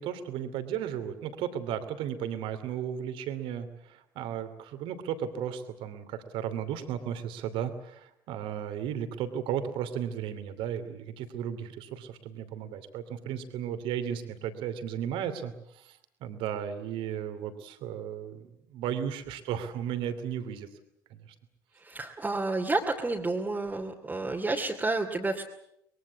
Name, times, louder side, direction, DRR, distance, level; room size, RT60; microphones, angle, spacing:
voice 1, 0.0-20.7, right 9 dB, 55° right, 10 dB, 2.8 m, -35 dB
voice 2, 21.8-25.4, right 2 dB, 15° right, -1 dB, 2.8 m, -30 dB
24.0 x 22.0 x 8.4 m, 0.77 s
figure-of-eight pair, 60°, 10 cm